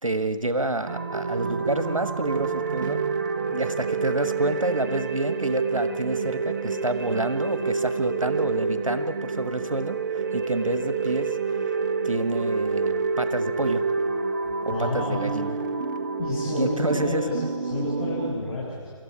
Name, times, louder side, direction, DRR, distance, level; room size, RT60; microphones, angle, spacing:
voice 1, 0.0-3.1 3.5-10.0 10.3-11.4 12.0-13.8 14.6-15.5 16.5-17.2, right 2 dB, 90° right, 10 dB, 1.5 m, -28 dB
sound 1, 0.9-18.4, right 4 dB, 35° right, 1.3 m, -28 dB
voice 2, 14.4-15.2 16.2-18.9, left 2 dB, 55° left, -6 dB, 7.6 m, -30 dB
25.5 x 13.5 x 9.8 m, 2.2 s
figure-of-eight pair, 145°, 17 cm